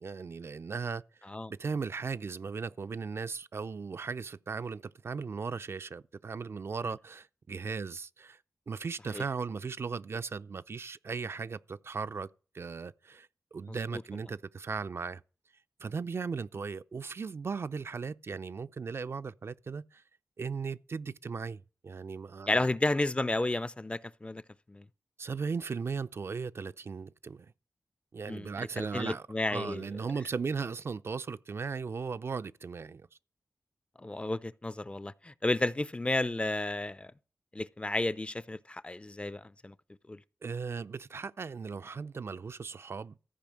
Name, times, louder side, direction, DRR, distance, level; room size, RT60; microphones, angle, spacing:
voice 1, 0.0-1.0 1.5-8.4 8.7-12.3 12.5-15.2 15.8-20.0 20.4-22.7 25.2-27.5 28.1-29.2 29.5-33.1 40.4-43.2, right 5 dB, 60° right, 0.5 m, -37 dB
voice 2, 13.7-14.0 22.5-24.4 24.7-24.9 28.3-29.9 34.0-37.1 37.5-39.7 40.1-40.2, left 2 dB, 25° left, 0.5 m, -32 dB
14.0 x 5.0 x 7.4 m
cardioid pair, 50°, 5 cm